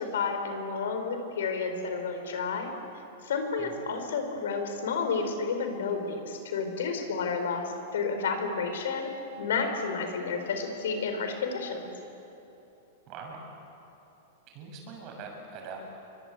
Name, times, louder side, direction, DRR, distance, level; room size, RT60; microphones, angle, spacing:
voice 1, 0.0-2.7 3.2-9.1 9.4-11.9, left 5 dB, 85° left, 6 dB, 5.0 m, -31 dB
voice 2, 13.1-13.4 14.5-15.8, right 5 dB, 35° right, 1 dB, 6.8 m, -42 dB
28.5 x 24.0 x 8.4 m, 2.9 s
supercardioid pair, 160°, 0 cm